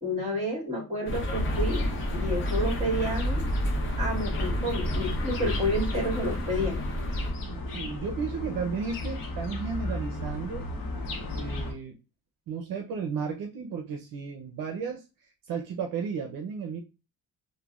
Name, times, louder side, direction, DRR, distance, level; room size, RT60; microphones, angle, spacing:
voice 1, 0.0-3.6 4.0-6.8, left 1 dB, 20° right, -1 dB, 1.7 m, -30 dB
sound 1, 1.1-7.3, equal, 35° left, 0.9 m, -30 dB
sound 2, 1.3-11.7, left 1 dB, 65° left, 0.9 m, -35 dB
voice 2, 7.4-10.7 11.3-11.9 12.5-16.8, right 6 dB, 65° right, 3 dB, 0.6 m, -34 dB
3.2 x 2.2 x 2.3 m, 0.29 s
cardioid pair, 115°, 36 cm